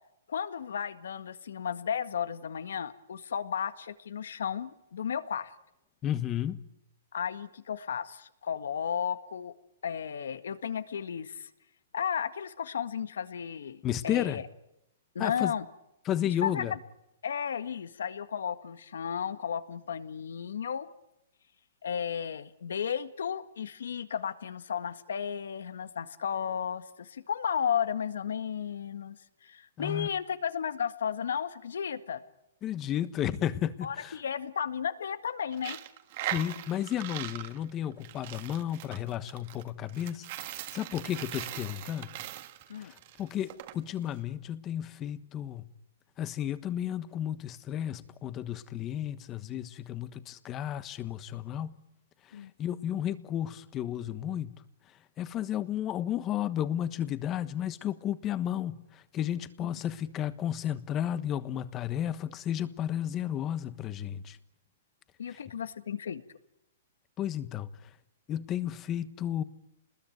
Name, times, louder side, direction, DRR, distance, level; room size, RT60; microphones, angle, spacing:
voice 1, 0.3-5.6 7.1-9.5 9.8-11.5 11.9-14.4 15.2-15.7 16.4-16.8 17.2-20.9 21.8-29.2 29.4-32.2 33.8-35.8 42.7-42.9 52.3-52.5 59.6-59.7 65.2-66.2, left 8 dB, 85° left, 11 dB, 1.8 m, -34 dB
voice 2, 6.0-6.6 13.8-14.4 15.2-15.5 16.0-16.7 29.8-30.1 32.6-34.2 36.2-40.3 40.7-42.1 42.8-45.7 46.2-51.8 52.2-54.6 55.2-64.4 65.3-65.4 67.2-67.9 68.3-69.4, left 11 dB, 25° left, 13 dB, 1.3 m, -33 dB
Coin (dropping), 35.5-43.7, right 14 dB, 45° right, 1.7 m, -40 dB
29.5 x 20.5 x 9.3 m, 0.86 s
hypercardioid pair, 155°, 0 cm